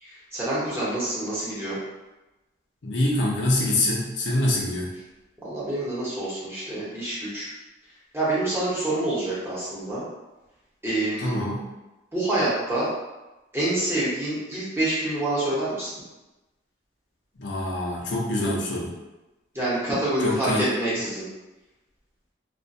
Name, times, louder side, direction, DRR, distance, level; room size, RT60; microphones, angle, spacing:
voice 1, 0.0-1.8 5.4-7.5 8.1-10.0 10.8-11.4 12.1-12.9 13.5-15.9 19.5-21.2, right 1 dB, 15° right, -9 dB, 0.8 m, -27 dB
voice 2, 2.8-4.9 11.2-11.6 17.4-18.9 20.2-20.6, left 1 dB, 80° left, -3 dB, 0.6 m, -25 dB
2.3 x 2.1 x 2.6 m, 1.1 s
head